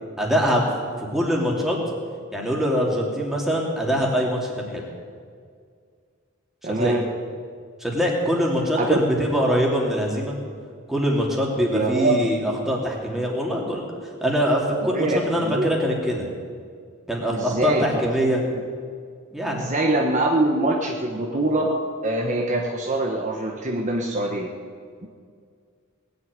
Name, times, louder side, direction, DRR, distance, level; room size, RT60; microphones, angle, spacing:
voice 1, 0.2-0.6 1.1-1.8 2.3-4.8 6.8-7.0 7.8-10.4 10.9-13.8 14.2-16.3 17.1-18.4 19.3-19.7, equal, ahead, -3 dB, 2.9 m, -23 dB
voice 2, 6.6-7.0 8.8-8.9 11.7-12.2 14.9-15.2 15.4-15.6 17.3-18.1 19.5-21.7 22.0-24.5 25.0-25.1, right 2 dB, 35° right, 0 dB, 1.2 m, -23 dB
19.5 x 8.0 x 9.5 m, 2.1 s
head